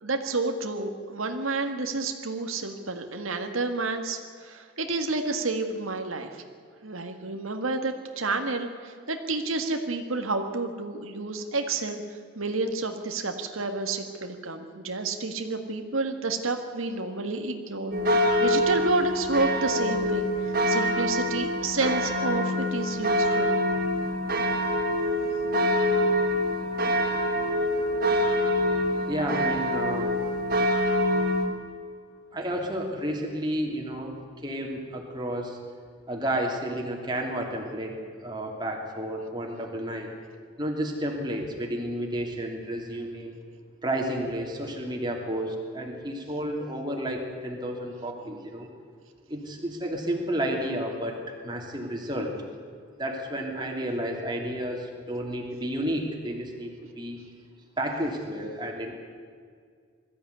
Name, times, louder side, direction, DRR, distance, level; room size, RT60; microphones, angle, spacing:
voice 1, 0.0-6.4 6.8-23.6, right 3 dB, 90° right, 5 dB, 1.8 m, -30 dB
sound 1, 17.9-31.5, equal, 45° right, 2.9 m, -25 dB
voice 2, 29.1-30.1 32.3-34.2 34.4-35.6 36.1-40.1 40.6-43.3 43.8-48.7 49.3-52.3 53.0-57.2 57.8-58.9, right 1 dB, 20° right, 0 dB, 3.0 m, -31 dB
21.5 x 14.0 x 9.6 m, 2.1 s
head